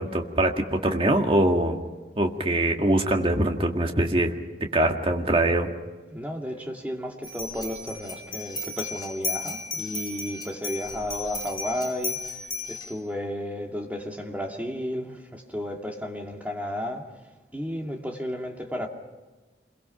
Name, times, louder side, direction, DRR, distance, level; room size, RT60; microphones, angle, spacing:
voice 1, 0.0-1.8 2.2-4.3 4.7-5.7, right 1 dB, 30° right, 3 dB, 1.9 m, -23 dB
voice 2, 6.1-12.2 12.7-17.1 17.5-18.9, equal, 10° right, 1 dB, 2.3 m, -33 dB
sound 1, 7.2-12.9, left 2 dB, 25° left, 3.6 m, -34 dB
28.0 x 22.5 x 5.8 m, 1.3 s
head